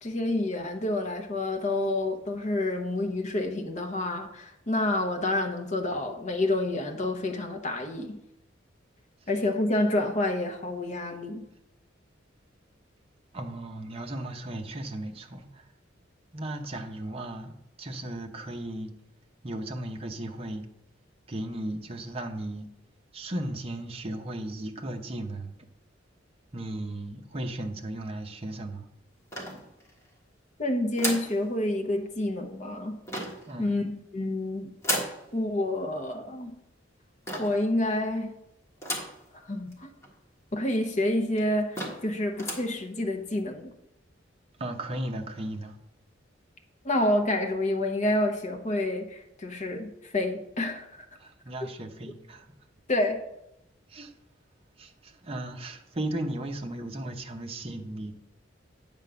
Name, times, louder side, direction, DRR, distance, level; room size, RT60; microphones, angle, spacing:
voice 1, 0.0-8.2 9.3-11.4 30.6-33.0 33.6-34.7 35.3-36.5 37.4-38.3 39.4-39.9 40.5-43.7 46.8-51.0 52.9-53.2, left 1 dB, 40° left, 0.9 m, -28 dB
voice 2, 13.3-15.7 16.3-18.9 19.4-20.7 21.3-22.7 23.1-25.7 26.5-28.9 33.5-33.8 44.6-45.8 51.1-52.5 53.9-54.1 54.8-58.2, right 1 dB, 30° right, 0.8 m, -36 dB
Julian's Door - turn doorknob without latch, 29.3-30.1 31.0-31.4 33.1-33.5 34.8-35.2 37.3-37.6 38.8-39.2 39.7-39.8 40.0-40.1 40.9-41.0 41.4-41.5 41.7-42.1 42.4-42.7, equal, 15° left, 1.5 m, -33 dB
9.1 x 3.7 x 6.8 m
head